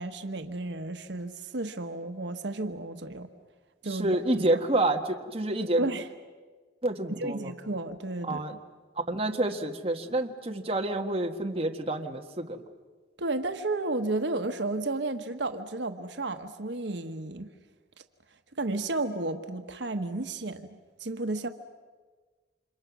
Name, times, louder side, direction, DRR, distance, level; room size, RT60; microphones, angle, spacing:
voice 1, 0.0-3.3 3.8-4.4 5.8-6.1 7.1-8.6 13.2-17.5 18.6-21.5, right 2 dB, 80° right, 7 dB, 1.3 m, -32 dB
voice 2, 3.9-5.8 6.8-7.5 8.2-8.5 9.1-12.6, right 2 dB, 30° right, 2 dB, 1.6 m, -28 dB
30.0 x 26.5 x 6.2 m, 1.4 s
head